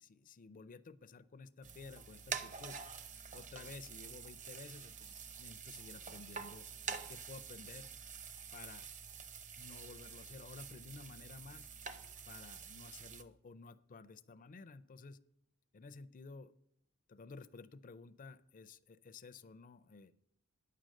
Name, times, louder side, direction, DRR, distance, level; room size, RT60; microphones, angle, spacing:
voice 1, 0.0-2.8 3.3-7.9 8.5-8.8 9.6-11.7 12.3-15.2 15.7-16.5 17.1-20.1, left 4 dB, 40° left, 16 dB, 0.4 m, -53 dB
sound 1, 1.6-13.2, right 6 dB, 35° right, 0.7 m, -47 dB
9.8 x 7.5 x 6.4 m, 0.75 s
head